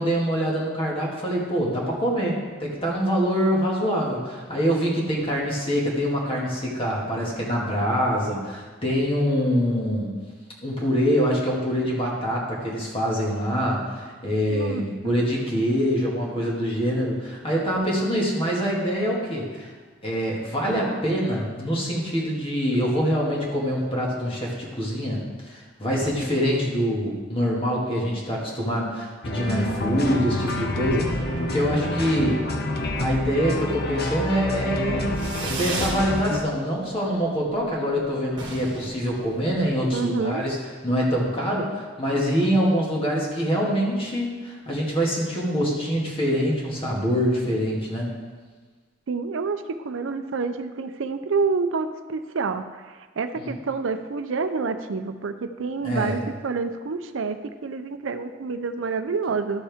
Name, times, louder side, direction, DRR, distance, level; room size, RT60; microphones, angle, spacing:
voice 1, 0.0-10.1 10.6-19.7 20.0-25.2 25.4-32.4 33.0-40.6 40.8-48.1 53.4-53.5 55.8-56.2, equal, 30° left, -3 dB, 2.1 m, -25 dB
voice 2, 14.5-15.2 39.9-40.4 49.1-59.6, right 4 dB, 75° right, 9 dB, 0.5 m, -28 dB
sound 1, 29.2-36.4, left 1 dB, 55° left, 0.9 m, -28 dB
Fireworks, 35.1-36.0 36.4-37.0 37.2-37.3 37.6-37.7 37.9-38.0 38.3-39.9, right 3 dB, 25° right, 1.5 m, -35 dB
13.0 x 7.1 x 3.5 m, 1.4 s
head